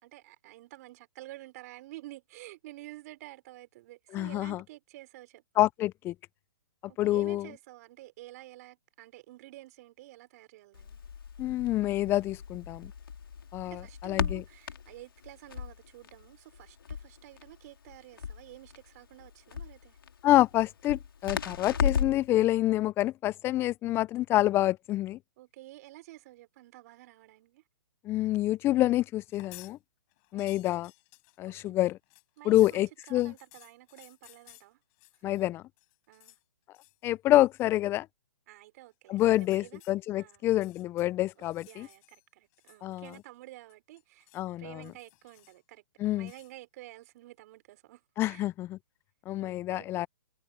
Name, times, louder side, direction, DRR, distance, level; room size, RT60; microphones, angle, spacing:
voice 1, 0.0-5.6 6.9-11.0 13.6-20.0 25.4-27.6 30.3-30.6 31.5-31.7 32.4-34.8 36.1-36.4 38.5-39.8 40.1-40.5 41.4-44.3 44.6-48.5 49.4-50.0, right 17 dB, 45° right, 5.3 m, -50 dB
voice 2, 4.1-4.6 5.6-6.1 7.0-7.5 11.4-12.9 13.5-13.7 14.0-14.4 20.2-25.2 28.0-29.8 30.3-30.9 31.4-32.0 32.5-33.3 35.2-35.6 37.0-38.1 39.1-41.9 42.8-43.1 44.3-44.8 46.0-46.3 48.2-48.8 49.3-50.1, left 15 dB, 20° left, 0.4 m, -27 dB
Crackle, 10.7-22.3, left 6 dB, 80° left, 3.0 m, -36 dB
sound 1, 29.2-29.8 30.1-35.5 35.8-36.4 36.7-37.1 37.4-37.7 39.1-40.0 40.5-42.2 42.5-43.4 43.7-44.5 44.8-45.7 46.2-46.6, left 35 dB, 35° left, 7.1 m, -57 dB
hypercardioid pair, 135°, 12 cm